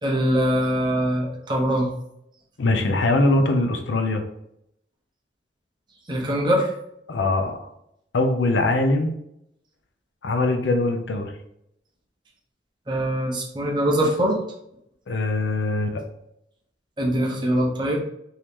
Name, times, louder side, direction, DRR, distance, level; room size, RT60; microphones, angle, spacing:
voice 1, 0.0-1.9 6.1-6.7 12.9-14.4 17.0-18.0, equal, 25° right, -2 dB, 0.7 m, -22 dB
voice 2, 2.6-4.2 7.1-7.5 8.1-9.2 10.2-11.3 15.1-16.0, left 2 dB, 80° left, 5 dB, 0.6 m, -22 dB
3.0 x 2.7 x 3.5 m, 0.78 s
head